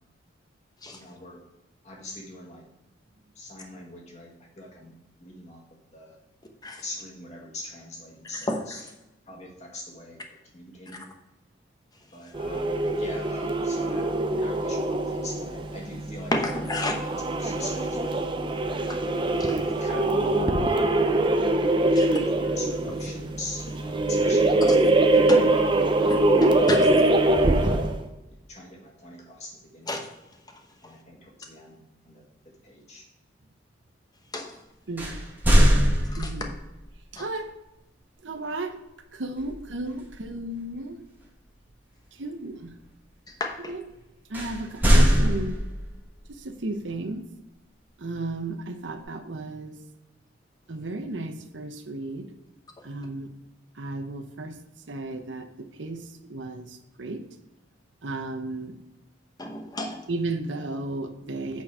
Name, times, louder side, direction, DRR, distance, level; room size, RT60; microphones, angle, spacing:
voice 1, 0.9-1.4 1.8-2.6 3.4-4.9 5.2-5.6 5.9-6.2 6.8-8.8 9.3-10.2 10.5-11.1 12.1-12.7 13.0-16.6 17.0-17.1 17.4-18.3 19.6-20.9 21.9-24.9 25.9-26.1 26.4-27.9 28.5-29.9 30.8-31.8 32.1-32.2 32.6-33.1, left 1 dB, 35° left, -2 dB, 1.8 m, -42 dB
voice 2, 8.3-8.8 16.3-16.9 18.9-19.0 19.4-19.6 22.0-22.1 24.7-24.8 25.1-25.5 26.4-26.9 29.9-30.0 34.3-34.6 36.1-36.3 37.2-37.3 43.4-43.6 59.4-60.0, left 1 dB, 20° left, 2 dB, 1.0 m, -30 dB
sound 1, 12.3-28.0, right 2 dB, 25° right, 0.6 m, -23 dB
sound 2, 35.0-36.6 39.4-39.7 40.1-40.3 44.3-46.0, equal, 10° right, 1.4 m, -20 dB
voice 3, 36.2-36.5 37.1-37.5 38.2-38.8 39.1-41.0 42.1-42.7 43.7-43.8 44.3-45.6 46.3-47.2 48.0-49.8 50.7-52.3 52.8-53.3 53.8-54.5 54.9-57.2 58.0-58.7 60.1-61.6, right 2 dB, 75° right, 7 dB, 0.9 m, -34 dB
8.4 x 4.3 x 4.8 m, 0.97 s
head